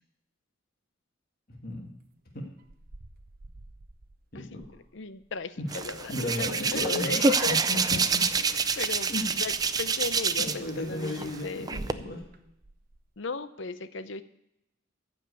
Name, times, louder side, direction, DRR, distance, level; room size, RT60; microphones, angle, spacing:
voice 1, 1.5-1.9 2.3-2.4 4.3-4.6 5.6-5.7 6.1-8.2 9.1-9.3 10.4-12.2, left 1 dB, 45° left, -1 dB, 2.0 m, -34 dB
sound 1, 2.4-6.9 7.1-10.9 11.2-13.1, right 2 dB, 45° right, 0.7 m, -49 dB
voice 2, 4.3-4.7 4.9-7.6 7.9-8.0 8.4-11.7 13.2-14.2, left 4 dB, 65° left, 13 dB, 0.6 m, -36 dB
Hands, 5.7-10.7 11.0-11.9, right 5 dB, 20° right, 0.4 m, -27 dB
14.5 x 5.3 x 8.3 m, 0.82 s
head